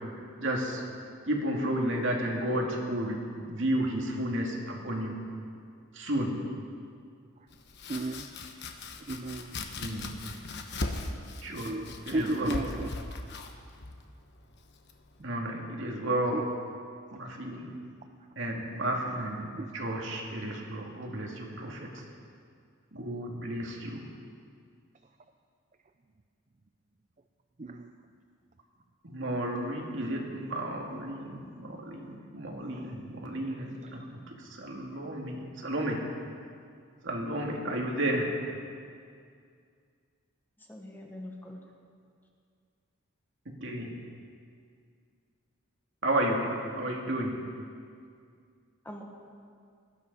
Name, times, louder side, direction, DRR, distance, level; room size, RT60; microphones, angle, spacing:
voice 1, 0.4-0.8 1.3-3.2 3.5-5.1 5.9-6.3 9.8-10.1 11.4-11.7 12.1-12.6 15.2-16.4 17.1-17.7 18.4-21.9 22.9-24.0 29.0-34.0 34.6-36.0 37.0-38.3 43.5-43.9 46.0-46.4 46.8-47.3, right 1 dB, 60° right, 0 dB, 2.4 m, -32 dB
Domestic sounds home sounds, 7.5-15.2, left 2 dB, 55° left, 1.1 m, -39 dB
voice 2, 7.9-8.3 9.1-9.5 11.5-12.9 16.3-16.4 19.6-19.7 27.6-27.9 30.9-31.1 32.6-32.9, right 1 dB, 35° right, 7 dB, 0.5 m, -34 dB
voice 3, 40.6-41.6 48.8-49.0, left 1 dB, 10° left, 0 dB, 1.5 m, -43 dB
18.5 x 12.5 x 5.5 m, 2.3 s
head